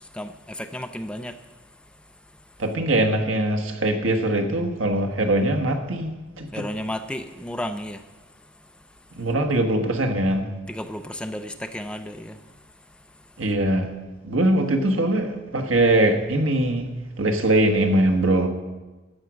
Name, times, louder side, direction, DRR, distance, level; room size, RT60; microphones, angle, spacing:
voice 1, 0.1-1.4 6.5-8.0 10.7-12.4, left 1 dB, 5° left, 7 dB, 0.4 m, -33 dB
voice 2, 2.6-6.6 9.1-10.5 13.4-13.9 14.2-16.9 17.2-18.5, right 1 dB, 80° right, 4 dB, 1.5 m, -22 dB
13.0 x 9.1 x 6.3 m, 1.2 s
head